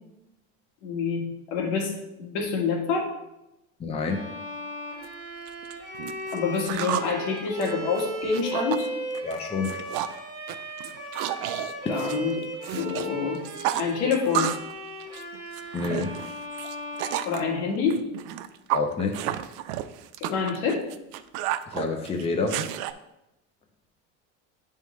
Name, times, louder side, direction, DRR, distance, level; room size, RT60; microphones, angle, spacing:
voice 1, 0.8-1.9 2.2-3.1 6.3-8.9 11.9-12.4 12.7-13.4 13.8-14.5 17.2-18.0 20.2-20.8, left 5 dB, 80° left, 0 dB, 1.7 m, -27 dB
voice 2, 3.8-4.3 9.2-9.8 15.7-16.1 18.7-19.3 21.7-22.7, left 4 dB, 15° left, 3 dB, 0.6 m, -28 dB
Bowed string instrument, 4.0-18.1, right 1 dB, 10° right, 2.3 m, -37 dB
sound 1, 5.0-5.1 5.5-7.1 7.5-8.9 9.1-9.4 9.6-10.2 10.5-13.1 13.3-14.7 15.0-17.4 17.9-22.9, right 12 dB, 75° right, 0.5 m, -31 dB
10.0 x 3.7 x 3.1 m, 0.91 s
cardioid pair, 145°, 34 cm